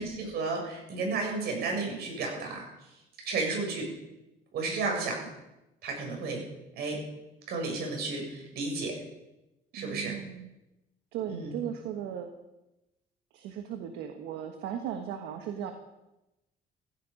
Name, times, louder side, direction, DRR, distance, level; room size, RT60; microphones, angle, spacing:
voice 1, 0.0-2.6 3.3-3.9 4.5-5.2 5.8-6.4 6.8-7.0 7.5-8.9 9.7-10.1 11.3-11.5, right 3 dB, 70° right, 1 dB, 7.4 m, -32 dB
voice 2, 9.7-10.5 11.1-12.3 13.3-15.7, right 9 dB, 90° right, 6 dB, 1.5 m, -37 dB
16.0 x 16.0 x 5.5 m, 0.94 s
cardioid pair, 110°, 17 cm